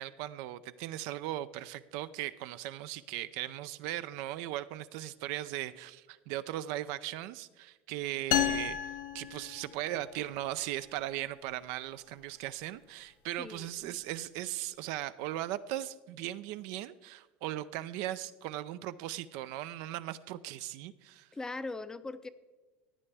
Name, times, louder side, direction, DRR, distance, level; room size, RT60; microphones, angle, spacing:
voice 1, 0.0-8.8 9.1-21.3, right 14 dB, 65° right, 13 dB, 0.4 m, -38 dB
sound 1, 8.3-10.1, left 10 dB, 70° left, 0.9 m, -32 dB
voice 2, 13.4-14.0 21.3-22.3, left 3 dB, 10° left, 12 dB, 0.5 m, -40 dB
15.0 x 9.7 x 3.4 m, 1.2 s
supercardioid pair, 110°, 6 cm